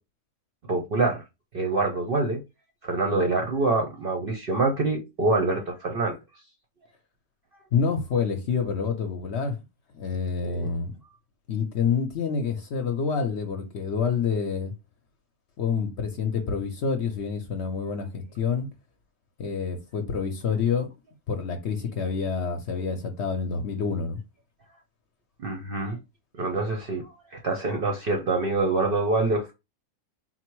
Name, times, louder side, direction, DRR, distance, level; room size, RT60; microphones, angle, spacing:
voice 1, 0.7-1.2 1.5-2.4 2.8-6.2 10.4-10.7 25.4-26.0 26.4-27.0 27.3-29.5, right 3 dB, 55° right, 0.6 m, -25 dB
voice 2, 7.7-9.6 9.9-10.9 11.5-14.7 15.6-18.7 19.4-20.9 21.3-24.2, left 6 dB, 60° left, 0.8 m, -27 dB
4.3 x 2.0 x 4.4 m
omnidirectional pair, 1.6 m